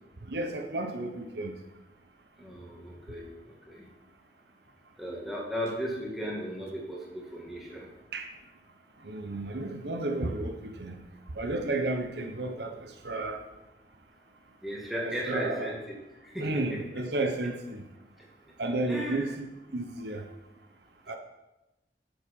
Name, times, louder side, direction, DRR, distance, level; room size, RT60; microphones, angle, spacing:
voice 1, 0.3-1.6 8.1-8.3 9.0-11.0 11.3-13.4 15.0-15.7 16.4-17.8 18.6-19.5 19.7-20.2 21.1-21.2, right 2 dB, 70° right, 5 dB, 0.9 m, -32 dB
voice 2, 2.4-3.9 5.0-7.9 14.6-16.8 18.9-19.3, equal, ahead, -4 dB, 2.1 m, -36 dB
8.6 x 7.2 x 5.4 m, 0.98 s
head